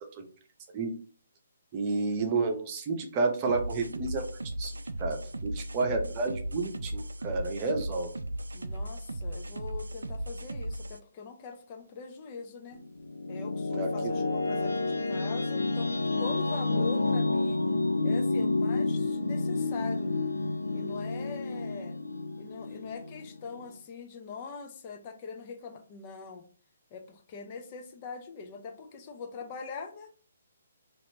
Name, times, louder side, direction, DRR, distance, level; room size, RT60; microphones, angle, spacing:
voice 1, 1.7-4.2 4.6-4.7 5.0-5.2 5.4-8.1 13.7-14.1, right 3 dB, 30° right, 3 dB, 0.8 m, -30 dB
sound 1, 3.5-11.0, right 1 dB, 80° right, 0.4 m, -37 dB
voice 2, 8.5-12.8 13.3-17.6 18.0-20.2 20.7-22.0 22.4-26.4 26.9-30.1, left 5 dB, 35° left, 5 dB, 0.6 m, -43 dB
sound 2, 12.7-23.8, left 3 dB, 75° left, 0.6 m, -30 dB
4.2 x 2.6 x 2.7 m, 0.42 s
figure-of-eight pair, 135°, 0 cm